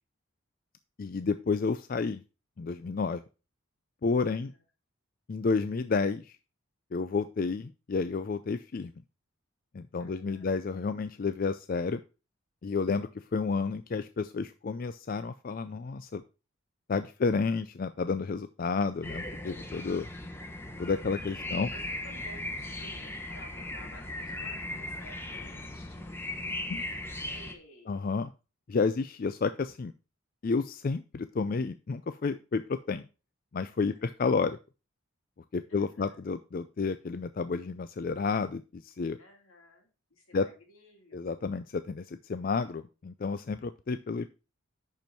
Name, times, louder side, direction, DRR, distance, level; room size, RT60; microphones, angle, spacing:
voice 1, 1.0-2.2 2.6-3.2 4.0-4.5 5.3-6.4 6.9-8.9 9.7-12.0 12.6-16.2 16.9-20.1 20.8-21.7 26.7-26.8 27.9-28.3 28.7-29.9 30.4-33.0 33.5-34.6 35.5-39.2 40.3-40.5 41.1-44.3, left 4 dB, 40° left, 11 dB, 0.4 m, -31 dB
voice 2, 4.2-4.6 10.0-10.6 21.6-26.2 26.7-28.0 33.8-34.1 35.7-36.3 39.2-41.2, left 1 dB, 80° left, 2 dB, 2.7 m, -55 dB
sound 1, 19.0-27.5, left 1 dB, 10° left, 0.8 m, -38 dB
10.5 x 4.6 x 4.5 m, 0.32 s
head